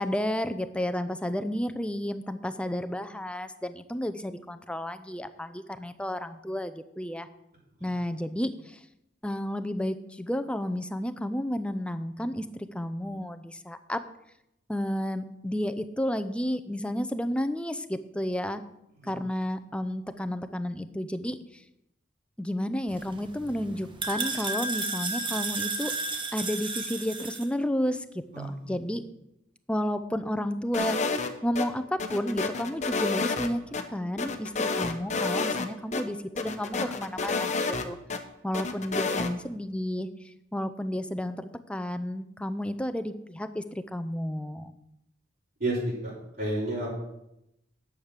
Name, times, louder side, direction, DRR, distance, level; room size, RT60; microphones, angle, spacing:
voice 1, 0.0-7.3 7.8-8.8 9.2-14.0 14.7-18.6 19.0-21.4 22.4-25.9 26.3-28.1 28.4-29.0 29.7-31.0 31.4-38.0 38.4-40.1 40.5-44.7, equal, 5° left, 10 dB, 0.6 m, -31 dB
sound 1, 22.9-27.5, right 3 dB, 25° right, 1.3 m, -33 dB
voice 2, 28.3-28.7 45.6-47.0, right 1 dB, 50° right, -7 dB, 4.6 m, -31 dB
sound 2, 30.7-31.7 32.0-33.8 34.2-35.7 35.9-36.0 36.4-38.2 38.5-39.3, left 4 dB, 40° left, 1.0 m, -29 dB
10.5 x 7.3 x 6.6 m, 0.83 s
head